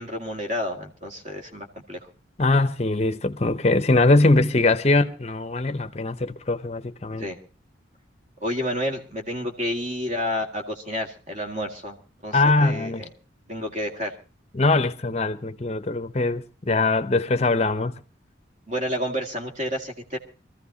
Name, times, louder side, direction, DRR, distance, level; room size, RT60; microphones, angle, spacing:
voice 1, 0.0-2.1 7.2-7.4 8.4-12.0 12.2-13.1 13.5-14.1 18.7-20.2, equal, 40° right, 2.0 m, -30 dB
voice 2, 2.4-7.3 12.3-13.0 14.5-17.9, left 2 dB, 35° left, 0.7 m, -22 dB
24.5 x 15.0 x 2.8 m
head